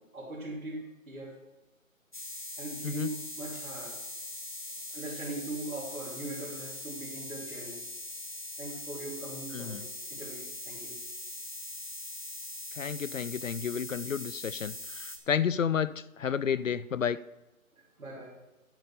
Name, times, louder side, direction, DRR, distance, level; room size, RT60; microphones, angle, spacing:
voice 1, 0.1-1.4 2.6-4.0 4.9-7.8 8.6-11.0 18.0-18.4, right 2 dB, 80° right, -6 dB, 3.2 m, -40 dB
sound 1, 2.1-15.2, left 1 dB, 35° left, 0.9 m, -41 dB
voice 2, 9.5-9.8 12.7-17.2, left 7 dB, 70° left, 17 dB, 0.5 m, -31 dB
10.5 x 6.7 x 5.4 m, 1.0 s
figure-of-eight pair, 180°, 41 cm